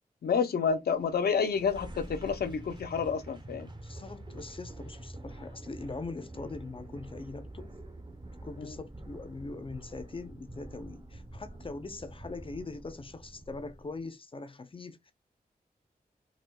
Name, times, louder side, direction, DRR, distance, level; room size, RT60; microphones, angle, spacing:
voice 1, 0.2-3.7 8.6-8.7, left 6 dB, 85° left, 0.6 m, -29 dB
sound 1, 0.9-14.0, right 1 dB, 30° right, 0.8 m, -46 dB
voice 2, 3.8-7.7 8.4-15.0, left 3 dB, 35° left, 0.5 m, -42 dB
4.4 x 2.3 x 2.2 m
wide cardioid pair, 80°, 16 cm